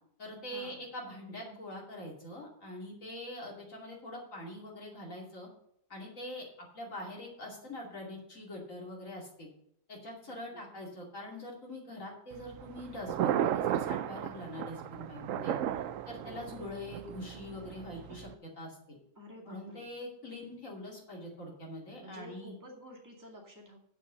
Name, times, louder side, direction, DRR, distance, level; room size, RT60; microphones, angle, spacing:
voice 1, 0.2-5.5 5.9-9.5 9.9-15.5 16.1-19.0 19.5-22.5, left 1 dB, 80° left, -2 dB, 3.0 m, -44 dB
voice 2, 10.2-10.6 15.3-15.9 16.2-16.5 19.2-19.9 22.0-23.8, equal, 15° right, -2 dB, 2.3 m, -51 dB
Thunder, 12.3-18.3, right 11 dB, 80° right, 1.0 m, -35 dB
8.6 x 7.0 x 6.7 m, 0.70 s
omnidirectional pair, 1.4 m